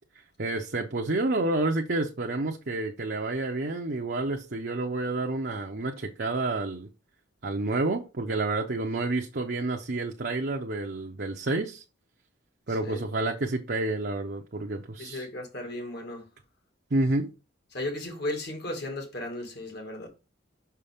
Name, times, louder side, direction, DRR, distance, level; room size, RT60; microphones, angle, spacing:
voice 1, 0.4-6.9 7.4-11.8 12.7-15.3 16.9-17.3, right 2 dB, 50° right, 0.7 m, -29 dB
voice 2, 15.0-16.2 17.7-20.1, left 1 dB, 50° left, 2.1 m, -35 dB
5.9 x 5.7 x 3.5 m
head